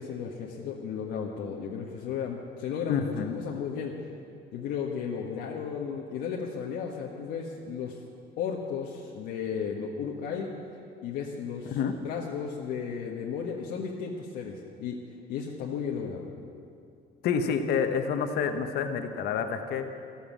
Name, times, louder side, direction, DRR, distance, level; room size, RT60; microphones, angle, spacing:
voice 1, 0.0-3.9 4.5-8.0 8.4-10.5 11.0-11.8 12.0-15.0 15.3-16.3, left 6 dB, 85° left, -2 dB, 1.5 m, -34 dB
voice 2, 2.9-3.4 11.7-11.9 17.2-19.8, left 6 dB, 70° left, 6 dB, 1.3 m, -28 dB
14.5 x 13.5 x 7.4 m, 2.4 s
cardioid pair, 110°, 17 cm